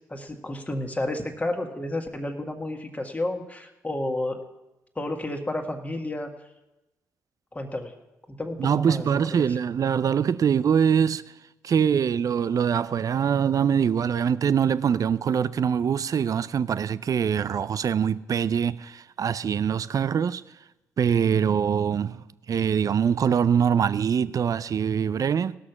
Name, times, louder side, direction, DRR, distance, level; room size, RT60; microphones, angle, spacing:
voice 1, 0.1-4.4 5.0-6.3 7.5-7.9 8.3-9.5, left 1 dB, 20° left, 1.8 m, -31 dB
voice 2, 8.6-11.2 11.6-20.4 21.0-25.6, right 7 dB, 50° right, 0.5 m, -23 dB
17.5 x 6.4 x 5.9 m
hypercardioid pair, 45°, 8 cm